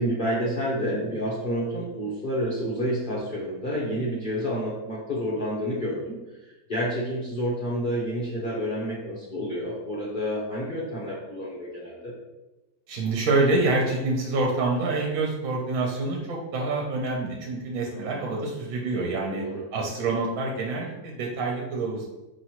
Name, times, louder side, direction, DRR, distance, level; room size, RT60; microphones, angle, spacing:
voice 1, 0.0-12.1 17.9-18.2 19.3-19.6, equal, 70° left, -6 dB, 0.4 m, -29 dB
voice 2, 12.9-19.4 19.7-22.1, right 3 dB, 65° right, -1 dB, 0.9 m, -26 dB
5.0 x 3.0 x 2.9 m, 1.0 s
omnidirectional pair, 2.0 m